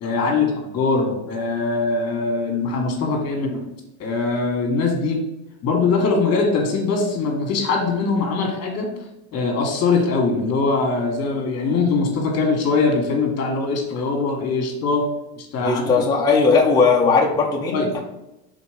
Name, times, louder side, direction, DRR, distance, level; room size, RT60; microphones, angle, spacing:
voice 1, 0.0-3.6 4.0-5.2 5.6-8.9 9.3-15.1 15.4-15.8 17.7-17.9, left 4 dB, 35° left, 1 dB, 1.8 m, -22 dB
voice 2, 15.6-18.0, left 4 dB, 10° left, -2 dB, 0.7 m, -18 dB
5.1 x 4.2 x 5.1 m, 0.95 s
supercardioid pair, 130°, 44 cm